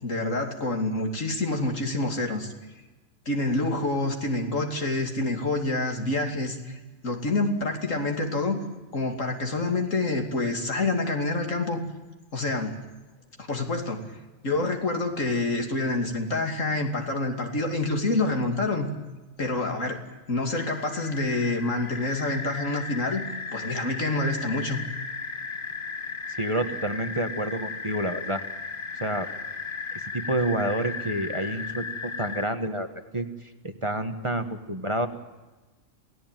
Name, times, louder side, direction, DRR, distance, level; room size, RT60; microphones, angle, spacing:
voice 1, 0.0-2.5 3.3-8.6 8.9-11.8 12.3-12.8 13.4-14.0 14.4-18.9 19.4-20.0 20.3-23.2 23.5-24.8, left 2 dB, 75° left, 4 dB, 3.1 m, -27 dB
sound 1, 20.6-32.5, left 4 dB, 45° left, 1.5 m, -36 dB
voice 2, 26.4-28.4 29.0-29.3 29.9-35.1, right 1 dB, 25° right, 7 dB, 1.5 m, -29 dB
28.0 x 17.0 x 9.2 m, 1.2 s
omnidirectional pair, 1.3 m